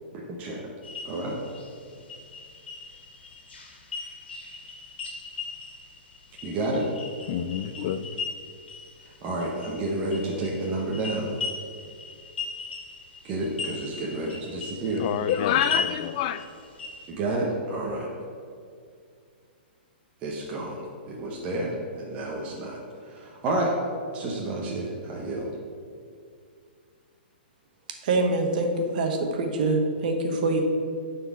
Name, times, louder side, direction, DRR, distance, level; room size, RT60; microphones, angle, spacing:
voice 1, 0.1-0.7 1.0-1.4 6.4-6.9 9.2-11.4 13.2-15.0 17.1-18.1 20.2-23.7 24.1-25.5, right 2 dB, 25° right, 0.9 m, -30 dB
sound 1, 0.8-17.1, left 3 dB, 85° left, 1.8 m, -38 dB
voice 2, 7.3-8.2 15.0-16.5, left 10 dB, 35° left, 0.3 m, -27 dB
voice 3, 28.0-30.6, right 2 dB, 50° right, 1.1 m, -25 dB
9.2 x 4.3 x 4.7 m
hypercardioid pair, 160°, 6 cm